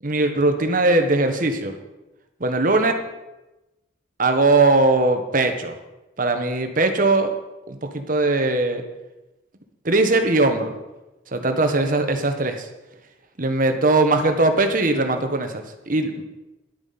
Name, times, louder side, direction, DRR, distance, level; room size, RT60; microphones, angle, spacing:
voice 1, 0.0-1.7 2.4-2.9 4.2-5.7 6.2-7.3 7.7-8.8 9.8-10.7 11.3-12.7 13.4-16.2, right 2 dB, 45° right, 6 dB, 1.3 m, -20 dB
11.0 x 9.0 x 5.8 m, 1.0 s
head